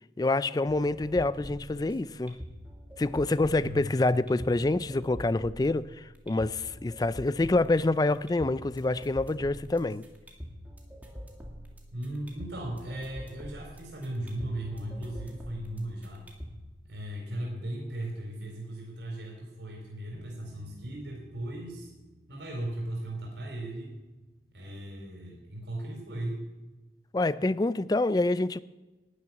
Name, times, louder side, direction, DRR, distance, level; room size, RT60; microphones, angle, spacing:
voice 1, 0.2-2.4 3.0-10.0 27.1-28.6, left 2 dB, 20° left, 16 dB, 0.3 m, -27 dB
sound 1, 0.6-16.6, equal, 10° right, 2.0 m, -46 dB
voice 2, 3.6-3.9 11.9-16.3 16.8-21.9 22.3-23.9 24.5-26.5, right 1 dB, 85° right, 0 dB, 4.0 m, -37 dB
Bass guitar, 20.1-26.4, right 2 dB, 60° right, 3.9 m, -58 dB
12.5 x 7.5 x 9.7 m, 1.2 s
head